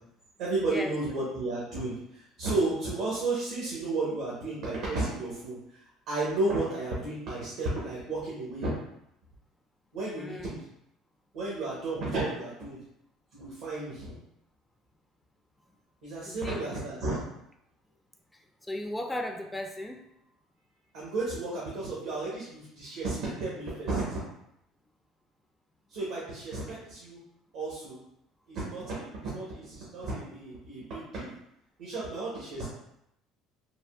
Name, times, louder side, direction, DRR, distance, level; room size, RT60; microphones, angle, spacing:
voice 1, 0.4-8.8 9.9-10.6 11.3-12.8 13.3-14.2 16.0-17.2 20.9-24.2 25.9-27.2 27.5-28.0 28.5-31.3 31.8-32.7, right 2 dB, 75° right, -6 dB, 0.9 m, -33 dB
voice 2, 10.2-10.6 16.3-16.6 18.3-20.0, left 1 dB, 10° left, 4 dB, 0.3 m, -36 dB
3.4 x 2.2 x 2.3 m, 0.79 s
hypercardioid pair, 70°, 0 cm